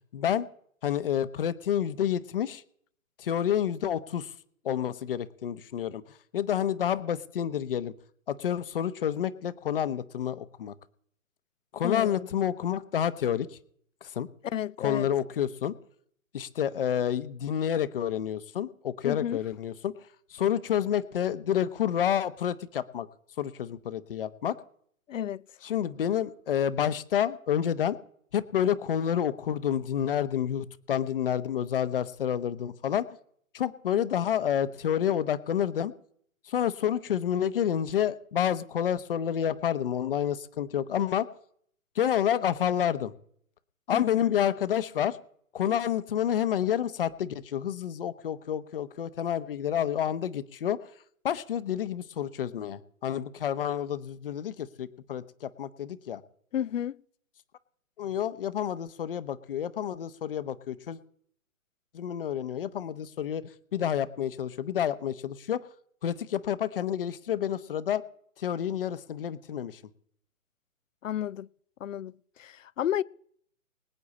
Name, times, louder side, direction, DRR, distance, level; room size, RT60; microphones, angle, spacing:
voice 1, 0.1-0.5 0.8-2.6 3.2-4.3 4.6-7.9 8.3-10.7 11.7-13.6 14.0-14.3 14.8-15.7 16.3-19.9 20.3-23.1 23.4-24.6 25.6-28.0 28.3-33.1 33.5-35.9 36.5-41.3 41.9-43.1 43.9-45.2 45.5-50.9 51.2-56.2 58.0-61.0 61.9-65.6 66.0-68.0 68.4-69.8, left 9 dB, 40° left, 1.0 m, -29 dB
voice 2, 11.8-12.3 14.4-15.1 19.0-19.4 25.1-25.4 43.9-44.3 56.5-57.0 71.0-71.5 71.8-72.1 72.4-73.0, left 10 dB, 65° left, 0.6 m, -31 dB
24.0 x 8.5 x 4.2 m
hypercardioid pair, 160°, 42 cm